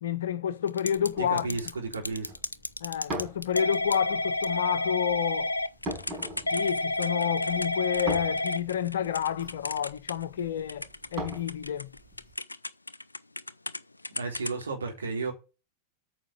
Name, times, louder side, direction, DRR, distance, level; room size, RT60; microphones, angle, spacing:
voice 1, 0.0-1.5 2.8-5.5 6.5-11.9, left 9 dB, 60° left, 1.0 m, -29 dB
Typing / Telephone, 0.7-1.1 1.4-10.4 10.7-13.8 14.0-14.6, left 2 dB, 80° left, 0.5 m, -31 dB
sound 1, 1.0-12.3, right 1 dB, 25° right, 5.4 m, -42 dB
voice 2, 1.2-2.3 14.1-15.3, right 4 dB, 75° right, 3.6 m, -33 dB
9.1 x 6.0 x 8.2 m
figure-of-eight pair, 90°, 0 cm